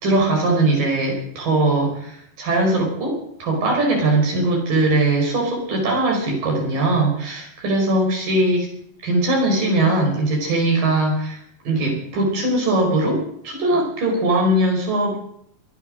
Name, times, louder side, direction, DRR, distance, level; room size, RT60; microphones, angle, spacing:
voice 1, 0.0-8.7 9.0-11.4 11.6-15.2, right 2 dB, 75° right, 1 dB, 6.6 m, -20 dB
23.5 x 9.5 x 6.5 m, 0.70 s
omnidirectional pair, 3.9 m